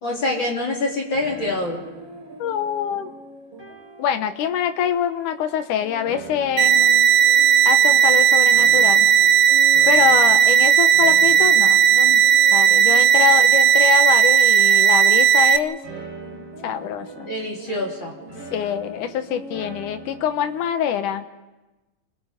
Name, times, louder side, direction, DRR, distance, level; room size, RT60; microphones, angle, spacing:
voice 1, 0.0-1.8 17.3-18.2, left 2 dB, 35° left, -1 dB, 4.0 m, -25 dB
sound 1, 1.1-20.7, right 2 dB, 40° right, 4.6 m, -41 dB
voice 2, 2.4-3.1 4.0-7.1 7.7-9.1 9.9-12.2 12.5-15.8 16.6-17.3 18.5-21.3, left 9 dB, 85° left, 9 dB, 2.7 m, -24 dB
sound 2, 6.6-15.6, right 8 dB, 75° right, 2.5 m, -15 dB
29.5 x 21.0 x 5.3 m, 1.1 s
omnidirectional pair, 3.5 m